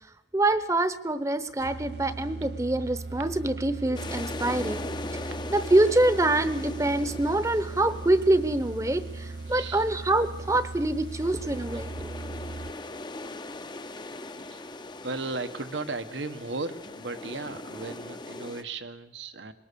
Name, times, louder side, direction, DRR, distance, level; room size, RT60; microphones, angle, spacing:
voice 1, 0.3-4.8 5.1-12.1, right 2 dB, 15° right, 13 dB, 0.8 m, -25 dB
sound 1, 1.6-13.0, right 3 dB, 65° right, 0.7 m, -39 dB
sound 2, 3.9-18.6, left 2 dB, 25° left, 0.6 m, -40 dB
voice 2, 9.5-9.8 14.4-19.5, right 3 dB, 85° right, 9 dB, 1.3 m, -36 dB
21.5 x 18.0 x 6.9 m, 0.94 s
head